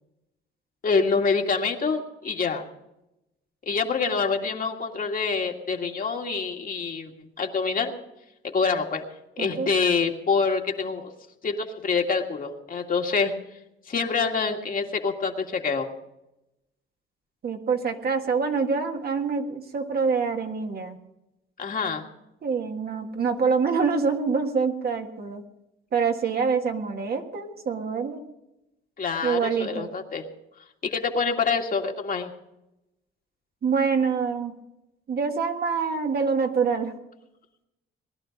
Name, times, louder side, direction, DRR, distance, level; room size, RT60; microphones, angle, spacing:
voice 1, 0.8-2.6 3.6-7.9 8.4-9.0 9.4-11.1 11.4-13.3 13.9-15.9 21.6-22.0 29.0-30.2 30.8-32.3, left 5 dB, 45° left, 2 dB, 1.9 m, -26 dB
voice 2, 9.4-9.7 17.4-21.0 22.4-25.4 25.9-28.3 29.2-29.9 33.6-34.5 35.1-36.9, right 5 dB, 50° right, 4 dB, 1.7 m, -25 dB
20.0 x 11.5 x 5.2 m, 0.91 s
cardioid pair, 90°, 20 cm